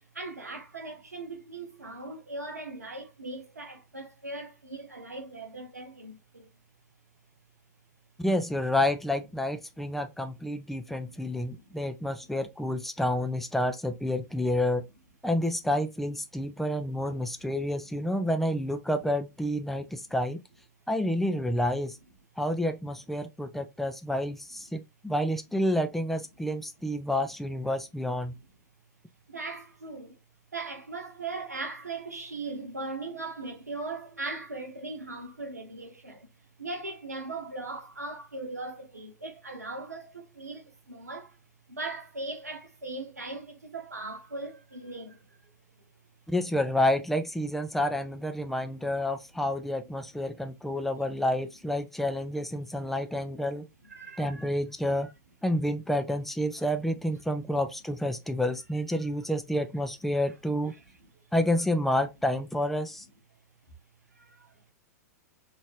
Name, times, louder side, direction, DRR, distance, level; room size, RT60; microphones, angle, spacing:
voice 1, 0.0-6.5 9.8-10.0 10.9-11.8 12.2-12.3 17.8-17.9 19.9-20.0 24.5-24.6 29.3-30.2 30.5-41.4 41.7-45.5 52.6-52.7 53.8-54.5 55.0-55.1 56.5-56.7 57.1-57.2 57.5-57.6 58.9-59.1 60.7-61.3 64.1-64.6, right 2 dB, 75° right, 0.9 m, -40 dB
voice 2, 8.2-14.8 15.2-20.4 20.9-22.0 22.4-28.3 46.3-53.7 54.2-55.1 55.4-60.7 61.3-63.0, left 1 dB, ahead, 0.3 m, -29 dB
3.0 x 2.4 x 3.0 m
figure-of-eight pair, 100°, 9 cm